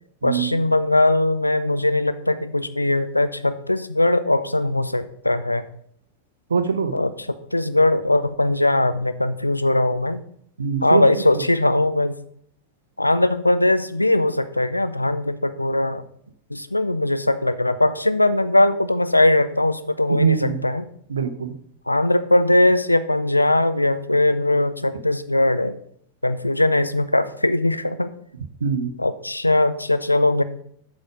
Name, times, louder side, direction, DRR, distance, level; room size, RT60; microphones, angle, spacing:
voice 1, 0.2-5.6 6.9-10.2 10.8-12.1 13.0-16.0 16.5-20.9 21.9-25.7 26.2-28.1 29.0-30.4, left 1 dB, 85° left, 12 dB, 0.5 m, -20 dB
voice 2, 6.5-6.9 10.6-11.0 20.1-20.6 21.1-21.5 28.6-28.9, right 6 dB, 70° right, 10 dB, 0.8 m, -22 dB
7.8 x 6.3 x 5.0 m, 0.65 s
figure-of-eight pair, 90°, 0 cm